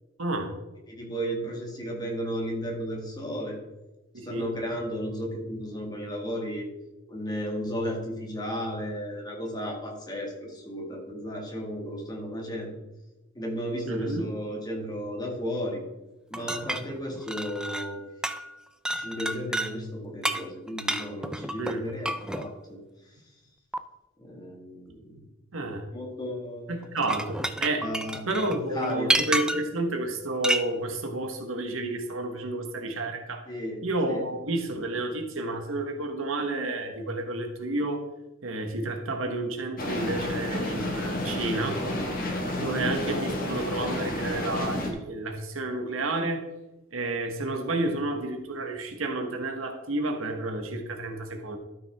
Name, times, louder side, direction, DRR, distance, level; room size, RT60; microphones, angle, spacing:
voice 1, 0.2-0.5 4.1-4.5 13.9-14.2 21.6-21.8 25.5-25.8 26.7-27.9 28.3-33.4 33.8-38.0 38.4-41.8 42.6-46.4 46.9-51.6, right 2 dB, 75° right, 4 dB, 1.3 m, -30 dB
voice 2, 0.9-3.6 4.2-6.7 7.1-12.7 13.4-15.8 16.3-18.0 18.9-22.8 24.2-25.2 25.9-26.9 27.8-28.2 28.5-29.1 33.5-33.8 34.1-34.2 42.4-42.8, equal, 20° left, -1 dB, 1.9 m, -34 dB
sound 1, 16.3-18.0 18.2-18.5 18.8-19.7 20.2-22.5 23.7-23.8 26.8-29.8 30.4-30.7, right 1 dB, 5° right, 0.4 m, -30 dB
sound 2, 39.8-44.9, left 1 dB, 45° left, 1.7 m, -30 dB
12.5 x 6.1 x 3.5 m, 1.0 s
head